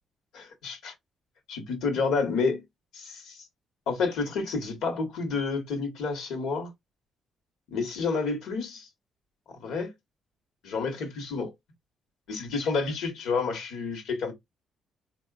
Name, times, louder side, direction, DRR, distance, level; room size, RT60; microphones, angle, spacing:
voice 1, 0.3-0.9 1.5-2.6 2.9-3.5 3.9-6.7 7.7-8.9 9.5-9.9 10.6-11.5 12.3-14.3, left 4 dB, 85° left, 1.1 m, -29 dB
3.8 x 2.3 x 2.4 m
cardioid pair, 90°, 0 cm